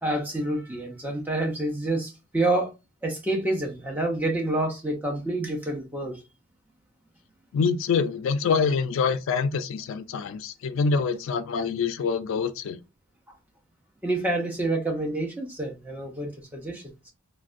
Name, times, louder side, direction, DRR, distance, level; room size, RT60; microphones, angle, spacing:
voice 1, 0.0-2.7 3.0-6.2 14.0-17.1, right 2 dB, 10° right, 0.5 m, -28 dB
voice 2, 7.5-12.8, left 5 dB, 60° left, 0.3 m, -25 dB
3.2 x 2.1 x 2.5 m
head